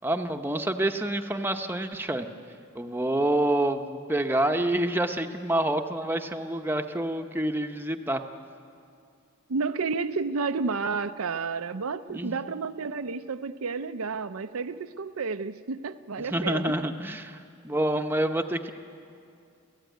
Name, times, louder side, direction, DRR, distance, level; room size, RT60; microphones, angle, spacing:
voice 1, 0.0-2.3 2.7-8.2 12.1-12.3 16.2-18.7, right 1 dB, 10° right, 5 dB, 0.8 m, -27 dB
voice 2, 9.5-16.9, right 4 dB, 70° right, 10 dB, 0.6 m, -31 dB
28.5 x 15.0 x 9.3 m, 2.4 s
head